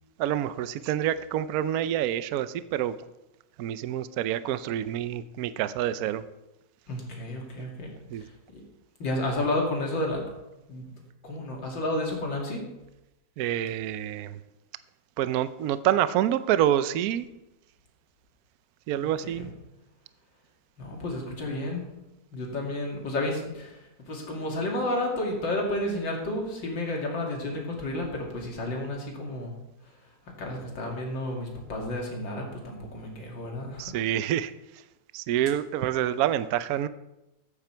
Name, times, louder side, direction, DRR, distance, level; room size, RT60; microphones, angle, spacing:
voice 1, 0.2-3.0 3.6-6.2 8.1-8.3 13.4-14.4 15.2-17.3 18.9-19.5 33.8-34.8 35.1-36.9, right 11 dB, 65° right, 14 dB, 1.0 m, -27 dB
voice 2, 6.9-7.9 8.5-8.6 9.0-10.2 10.7-10.9 11.2-12.6 19.2-19.4 20.8-21.8 22.3-23.8 24.1-29.5 30.4-33.9, left 1 dB, 90° left, 0 dB, 3.1 m, -31 dB
14.0 x 8.6 x 4.5 m, 0.96 s
omnidirectional pair, 2.0 m